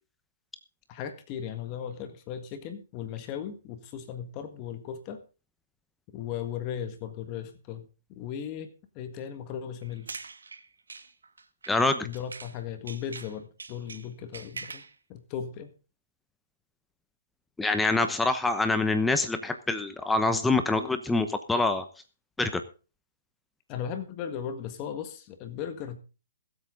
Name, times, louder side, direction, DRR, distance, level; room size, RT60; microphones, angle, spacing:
voice 1, 0.9-5.2 6.1-8.7 8.9-10.1 12.0-14.8 15.1-15.7 23.7-26.0, left 8 dB, 35° left, 7 dB, 1.6 m, -37 dB
sound 1, 9.8-12.6 12.9-15.0, right 4 dB, 85° right, 1.8 m, -43 dB
voice 2, 11.7-12.1 17.6-21.9 22.4-22.6, left 3 dB, 5° left, 9 dB, 0.9 m, -25 dB
21.5 x 8.4 x 3.9 m, 0.34 s
hypercardioid pair, 140°, 0 cm